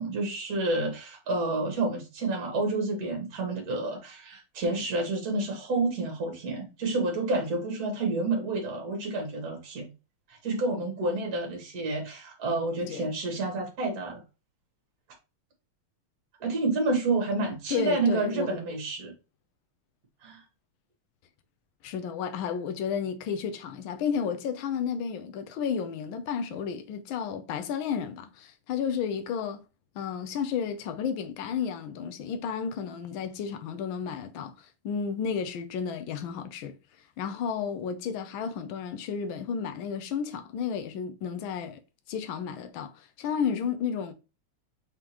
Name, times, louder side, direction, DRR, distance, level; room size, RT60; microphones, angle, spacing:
voice 1, 0.0-9.9 10.3-14.2 16.4-19.1 20.2-20.4, right 2 dB, 45° right, 1.8 m, -29 dB
voice 2, 17.7-18.6 21.8-29.6 29.9-34.5 34.8-36.8 37.2-41.8 42.1-44.1, left 7 dB, 70° left, 1.4 m, -32 dB
4.9 x 3.6 x 2.9 m
omnidirectional pair, 2.4 m